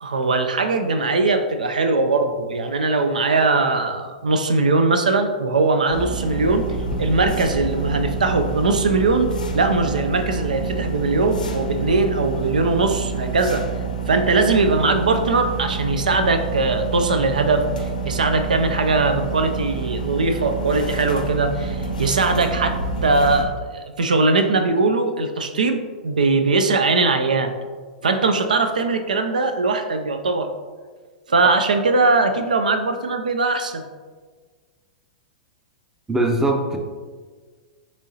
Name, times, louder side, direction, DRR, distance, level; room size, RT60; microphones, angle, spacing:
voice 1, 0.0-6.7 7.0-13.7 14.1-27.5 28.0-30.5 31.3-33.8, right 3 dB, 85° right, 7 dB, 0.4 m, -20 dB
sound 1, 5.9-23.5, right 4 dB, 90° left, 0.6 m, -28 dB
voice 2, 36.1-36.8, right 2 dB, 10° right, 3 dB, 0.6 m, -20 dB
6.1 x 3.1 x 2.7 m, 1.5 s
hypercardioid pair, 105°, 4 cm